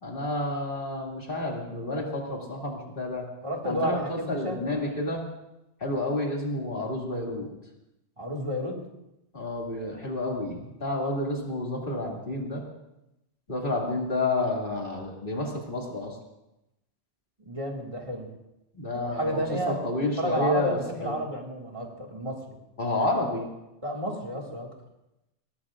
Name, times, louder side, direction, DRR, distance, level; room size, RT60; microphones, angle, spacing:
voice 1, 0.0-3.3 3.6-5.2 5.8-7.5 9.3-12.6 13.5-16.2 18.8-21.1 22.8-23.5, left 2 dB, 45° left, -1 dB, 2.7 m, -30 dB
voice 2, 3.4-4.6 8.2-8.8 17.4-18.3 19.0-19.8 20.2-22.6 23.8-24.7, equal, 25° right, -1 dB, 2.2 m, -31 dB
22.5 x 17.0 x 2.5 m, 0.91 s
omnidirectional pair, 1.2 m